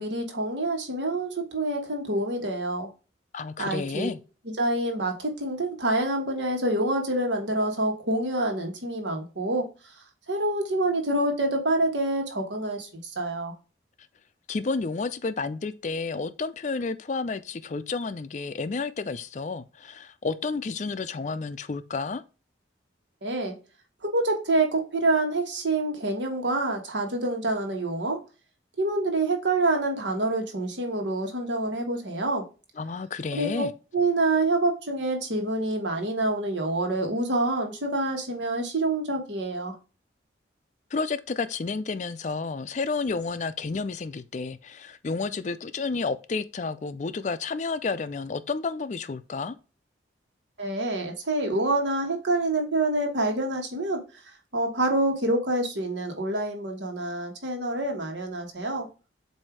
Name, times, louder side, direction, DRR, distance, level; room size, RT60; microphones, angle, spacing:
voice 1, 0.0-2.9 3.6-4.1 4.4-9.7 10.3-13.5 23.2-23.6 24.1-28.2 28.8-32.4 33.3-33.6 33.9-39.7 50.6-58.9, right 2 dB, 75° right, 1.5 m, -27 dB
voice 2, 3.3-4.2 14.5-22.2 32.8-33.7 40.9-49.6, left 4 dB, 40° left, 0.4 m, -31 dB
7.5 x 2.7 x 4.6 m
head